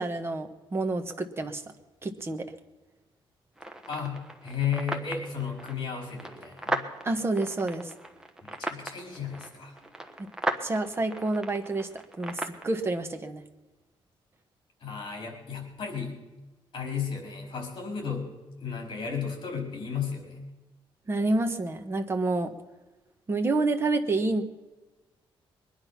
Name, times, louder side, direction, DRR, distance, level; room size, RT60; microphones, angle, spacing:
voice 1, 0.0-1.6 2.0-2.5 7.0-7.9 10.2-10.3 10.6-11.9 12.2-13.4 21.1-22.5 23.3-24.4, right 2 dB, 25° right, 6 dB, 1.2 m, -28 dB
sound 1, 3.6-12.6, right 1 dB, 5° right, 1.2 m, -37 dB
voice 2, 3.9-6.8 8.4-9.7 14.8-16.1 16.7-18.3 18.6-20.4, left 6 dB, 50° left, 1 dB, 4.7 m, -34 dB
22.5 x 10.0 x 5.8 m, 1.1 s
wide cardioid pair, 140°, 10 cm